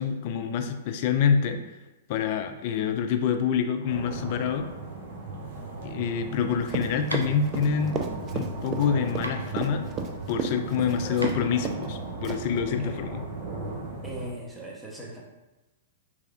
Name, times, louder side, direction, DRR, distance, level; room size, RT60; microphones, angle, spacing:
voice 1, 0.0-1.8 2.1-4.7 5.8-8.0 8.3-9.9 10.3-13.2, left 7 dB, 45° left, 7 dB, 0.3 m, -26 dB
sound 1, 3.9-14.3, right 3 dB, 60° right, 0.8 m, -37 dB
Run, 6.7-11.4 11.6-11.9 12.2-12.6, right 6 dB, 25° right, 0.4 m, -32 dB
sound 2, 7.1-12.5, right 1 dB, 90° right, 0.4 m, -41 dB
voice 2, 10.8-11.3 12.8-12.9 14.0-15.2, right 1 dB, ahead, -4 dB, 0.8 m, -39 dB
3.4 x 3.2 x 2.4 m, 1.1 s
figure-of-eight pair, 105°, 0 cm